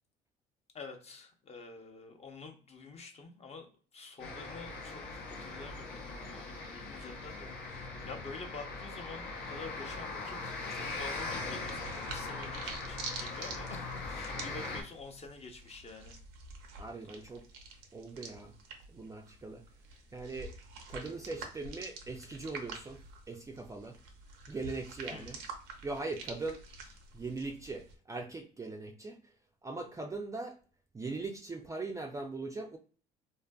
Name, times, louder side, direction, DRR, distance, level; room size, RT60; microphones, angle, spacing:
voice 1, 0.7-16.2 25.1-25.4, left 4 dB, 35° left, 4 dB, 0.6 m, -48 dB
sound 1, 4.2-14.8, left 3 dB, 80° left, 0.7 m, -40 dB
sound 2, 10.8-27.9, right 3 dB, 90° right, 0.6 m, -47 dB
voice 2, 16.8-17.5 17.9-18.5 18.9-19.6 20.1-20.5 20.9-23.0 23.3-24.0 24.5-25.4 25.8-26.7 27.1-29.3 29.6-30.6 30.9-32.8, right 3 dB, 20° right, 3 dB, 0.3 m, -40 dB
2.5 x 2.5 x 2.2 m, 0.39 s
cardioid pair, 95°, 18 cm